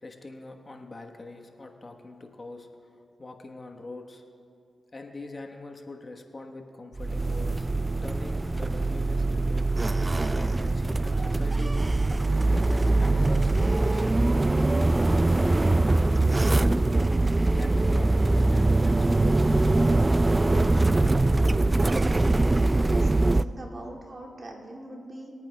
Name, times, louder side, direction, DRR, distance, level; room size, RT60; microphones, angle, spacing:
voice 1, 0.0-2.7 3.2-4.2 4.9-7.7 8.0-9.7 10.1-11.9 12.4-15.6 15.8-17.0 17.5-20.0, left 2 dB, 45° left, 3 dB, 1.1 m, -43 dB
sound 1, 7.0-23.4, right 2 dB, 30° right, 0.3 m, -23 dB
voice 2, 22.7-25.3, right 1 dB, 50° right, -2 dB, 2.4 m, -42 dB
25.0 x 8.9 x 2.2 m, 2.5 s
cardioid pair, 45°, 0 cm